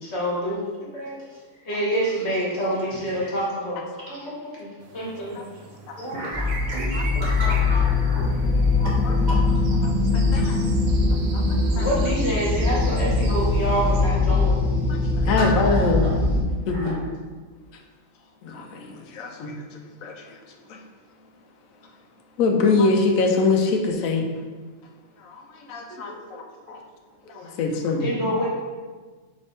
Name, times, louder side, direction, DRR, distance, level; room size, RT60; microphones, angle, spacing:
voice 1, 0.0-1.2 1.6-3.8 4.1-5.4 11.8-14.6 27.9-28.5, equal, 55° left, -5 dB, 1.4 m, -27 dB
voice 2, 1.3-1.7 2.0-2.4 2.9-3.3 4.1-4.3 4.5-4.6 6.0-9.6 9.9-10.2 15.2-16.2 16.7-17.0 25.9-26.2 27.1-27.6, equal, 40° right, -6 dB, 0.9 m, -35 dB
sound 1, 4.8-14.0, right 4 dB, 70° right, 0.9 m, -40 dB
sound 2, 6.3-16.4, left 3 dB, ahead, 0.4 m, -22 dB
voice 3, 9.8-10.6 11.3-11.9 14.9-16.0 16.7-16.9 18.4-19.5 20.0-20.2 20.7-20.8 22.4-24.2 25.2-25.4 25.7-26.4 26.7-26.8 27.3-28.1, left 3 dB, 90° left, 2 dB, 1.0 m, -24 dB
3.5 x 3.4 x 4.1 m, 1.4 s
omnidirectional pair, 1.4 m